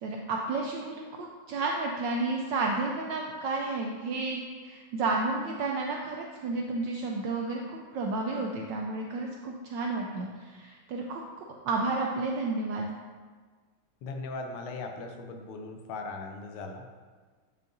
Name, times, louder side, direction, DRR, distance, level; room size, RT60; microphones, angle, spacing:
voice 1, 0.0-12.9, right 3 dB, 75° right, 1 dB, 1.1 m, -32 dB
voice 2, 14.0-16.8, left 3 dB, 85° left, 4 dB, 1.6 m, -38 dB
9.0 x 5.5 x 2.6 m, 1.5 s
omnidirectional pair, 2.3 m